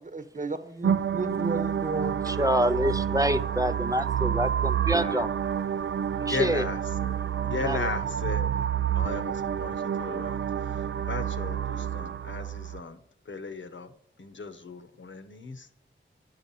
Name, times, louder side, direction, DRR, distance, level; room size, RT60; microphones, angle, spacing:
voice 1, 0.0-2.4, right 3 dB, 40° right, 9 dB, 1.1 m, -33 dB
sound 1, 0.8-12.8, right 9 dB, 75° right, 0.4 m, -29 dB
voice 2, 2.3-5.3 6.2-6.6 7.6-7.9, equal, 15° right, 11 dB, 0.6 m, -26 dB
voice 3, 4.8-5.2 6.3-8.5 8.9-15.7, left 4 dB, 70° left, 8 dB, 1.0 m, -37 dB
10.5 x 5.8 x 6.9 m, 0.67 s
wide cardioid pair, 65°, 20 cm